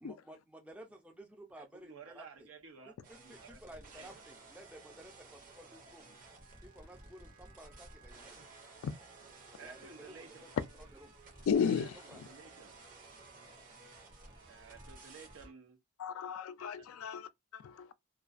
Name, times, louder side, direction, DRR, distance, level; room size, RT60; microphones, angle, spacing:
voice 1, 0.0-2.5 2.9-6.1 6.6-8.4 9.6-10.5 12.1-12.2, right 1 dB, 5° right, 0.4 m, -54 dB
voice 2, 1.6-4.1 6.1-6.2 9.6-10.5 11.7-12.7 14.5-15.8 16.8-16.9, right 5 dB, 75° right, 0.7 m, -54 dB
sound 1, 3.0-15.5, right 3 dB, 40° right, 0.7 m, -55 dB
sound 2, 4.4-15.5, right 3 dB, 55° right, 1.1 m, -62 dB
voice 3, 11.5-12.3 16.0-17.9, left 6 dB, 75° left, 0.3 m, -34 dB
2.3 x 2.3 x 2.4 m
head